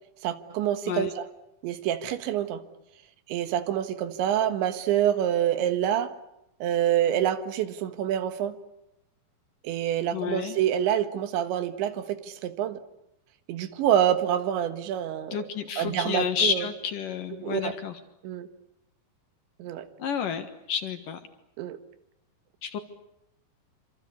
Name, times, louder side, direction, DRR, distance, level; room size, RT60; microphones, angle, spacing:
voice 1, 0.2-1.3 1.6-2.6 3.3-6.1 6.6-8.6 9.6-12.8 13.5-15.5 15.8-16.7 17.4-17.7 18.2-18.5 19.6-19.9 21.6-21.8, right 10 dB, 85° right, 3.9 m, -27 dB
voice 2, 10.1-10.6 15.3-18.0 20.0-21.2 22.6-22.8, left 7 dB, 60° left, 2.8 m, -30 dB
27.0 x 26.5 x 8.4 m
omnidirectional pair, 5.1 m